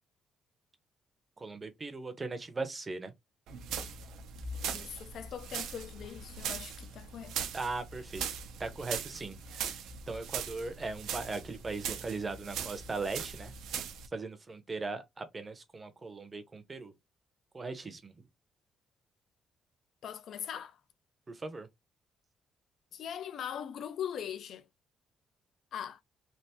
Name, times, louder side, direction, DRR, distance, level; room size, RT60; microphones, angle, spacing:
voice 1, 1.4-3.1 7.5-8.3 8.6-9.8 10.1-13.5 14.1-16.9 17.5-18.2 21.3-21.7, right 3 dB, 20° right, 0.6 m, -39 dB
sound 1, 3.5-14.1, right 7 dB, 85° right, 0.6 m, -40 dB
voice 2, 4.6-7.4 20.0-20.8 22.9-24.6 25.7-26.0, left 9 dB, 60° left, 0.3 m, -41 dB
3.3 x 2.5 x 2.8 m
cardioid pair, 155°, 0 cm